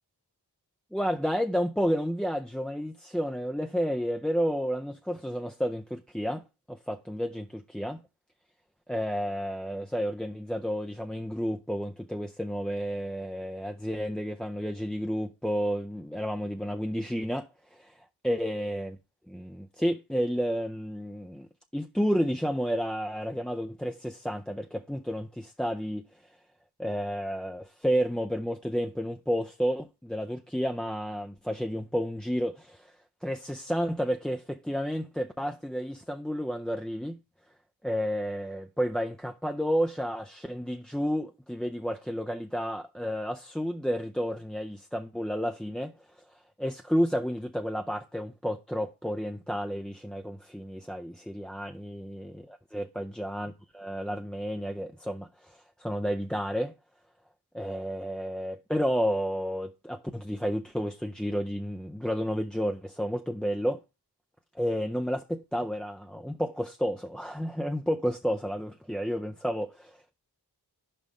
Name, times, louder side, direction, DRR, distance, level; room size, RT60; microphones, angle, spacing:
voice 1, 0.9-6.4 6.7-8.0 8.9-18.0 18.2-19.0 19.3-26.1 26.8-32.9 33.2-37.2 37.8-45.9 46.6-56.7 57.5-63.8 64.6-69.9, equal, ahead, 0.5 m, -31 dB
5.6 x 5.1 x 4.8 m
cardioid pair, 50°, 40 cm